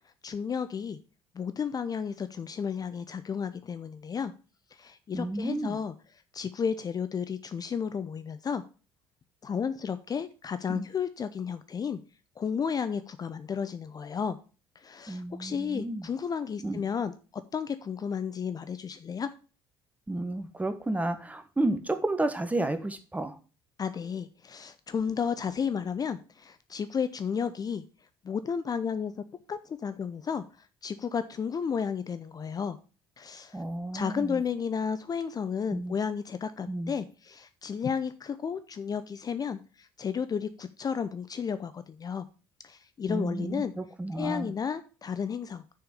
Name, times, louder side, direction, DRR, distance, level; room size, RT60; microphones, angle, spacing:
voice 1, 0.2-1.0 1.3-4.3 4.8-5.9 6.3-8.6 9.4-12.0 12.4-14.4 14.8-17.1 17.5-19.3 23.8-27.8 28.2-29.1 29.5-30.4 30.8-32.8 33.2-33.6 33.9-42.3 42.6-43.7 44.1-45.6, left 6 dB, 30° left, 12 dB, 0.6 m, -32 dB
voice 2, 5.1-5.8 10.7-10.9 15.1-16.1 16.6-16.8 20.1-23.4 33.5-34.4 35.7-35.9 36.7-36.9 43.1-44.5, right 2 dB, 10° right, 10 dB, 1.3 m, -31 dB
6.8 x 5.7 x 6.7 m, 0.35 s
figure-of-eight pair, 55°, 12 cm